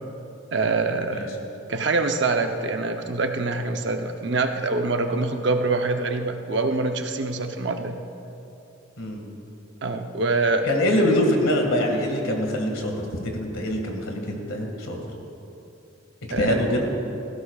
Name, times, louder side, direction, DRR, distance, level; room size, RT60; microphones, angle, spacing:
voice 1, 0.5-1.3 1.7-8.0 9.8-10.7 16.3-16.6, right 3 dB, 60° right, 5 dB, 0.8 m, -25 dB
voice 2, 10.6-12.9 13.3-15.0 16.4-16.8, left 1 dB, 85° left, 2 dB, 2.0 m, -24 dB
18.0 x 15.5 x 2.4 m, 2.8 s
head